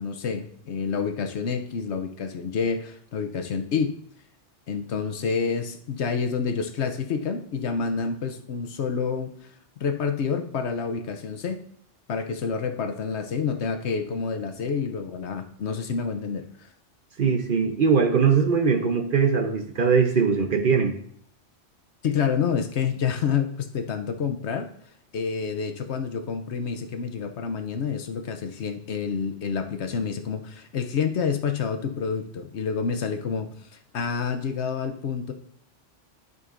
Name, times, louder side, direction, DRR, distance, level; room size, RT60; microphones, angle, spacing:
voice 1, 0.0-4.0 4.7-9.3 9.8-11.6 12.1-16.7 22.0-24.7 25.1-33.7 33.9-35.3, left 6 dB, 65° left, 7 dB, 1.0 m, -28 dB
voice 2, 17.2-20.9, right 5 dB, 50° right, 4 dB, 0.8 m, -21 dB
11.0 x 5.4 x 2.5 m, 0.64 s
omnidirectional pair, 1.3 m